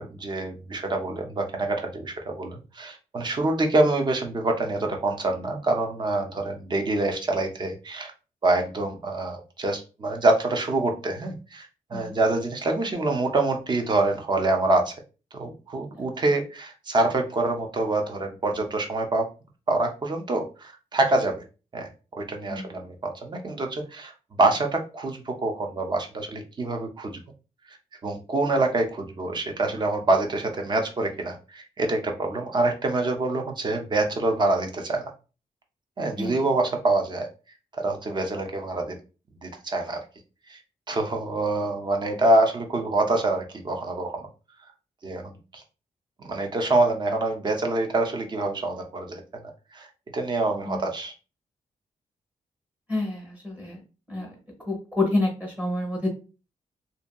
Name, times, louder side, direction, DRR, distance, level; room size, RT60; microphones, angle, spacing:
voice 1, 0.0-8.1 8.4-15.0 15.3-19.3 19.7-21.4 21.7-24.1 24.4-27.1 28.0-35.0 36.0-37.3 37.8-39.0 39.4-40.0 40.5-40.6 40.9-44.3 45.0-45.6 46.2-49.9 50.1-51.1, right 2 dB, 35° right, 3 dB, 0.5 m, -26 dB
voice 2, 36.2-36.5 50.6-50.8 52.9-53.8 54.1-54.3 54.7-56.1, left 2 dB, 10° right, 0 dB, 0.9 m, -28 dB
2.6 x 2.6 x 2.2 m, 0.33 s
wide cardioid pair, 175°, 14 cm